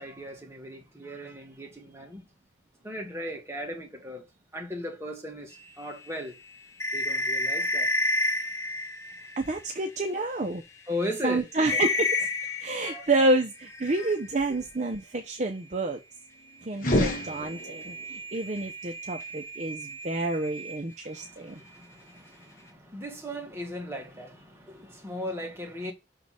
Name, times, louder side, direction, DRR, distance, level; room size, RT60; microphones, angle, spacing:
voice 1, 0.0-2.2 2.8-4.3 4.5-6.3 6.9-7.9 10.9-11.5 12.8-13.1 14.5-14.6 21.2-25.9, left 1 dB, 15° right, 1.9 m, -37 dB
sound 1, 5.8-10.1 10.7-10.8 11.1-11.3 11.6-14.5 16.9-21.3, left 2 dB, 15° left, 1.0 m, -32 dB
voice 2, 9.4-10.6 11.2-12.3 12.6-16.0 16.6-21.6, right 2 dB, 40° right, 0.7 m, -29 dB
sound 2, 16.7-18.1, left 1 dB, 50° left, 1.3 m, -27 dB
6.3 x 3.8 x 5.7 m
head